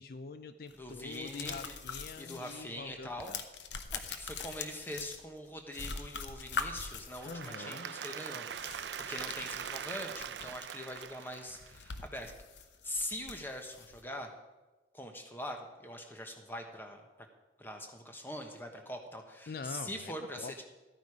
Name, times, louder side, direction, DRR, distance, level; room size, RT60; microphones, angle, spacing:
voice 1, 0.0-3.4 7.2-7.9 19.5-20.6, left 4 dB, 55° left, 11 dB, 0.4 m, -45 dB
sound 1, 0.7-2.6 2.9-5.5 5.7-7.5 8.5-10.6 11.0-11.1 11.4-14.0, left 5 dB, 90° left, 0.9 m, -43 dB
voice 2, 0.7-1.8 2.2-3.3 3.9-12.3 12.8-14.3 14.9-17.0 17.6-20.6, left 1 dB, 10° left, 4 dB, 1.1 m, -43 dB
Applause / Crowd, 7.1-12.1, right 8 dB, 80° right, 0.5 m, -42 dB
12.5 x 9.2 x 4.9 m, 1.2 s
head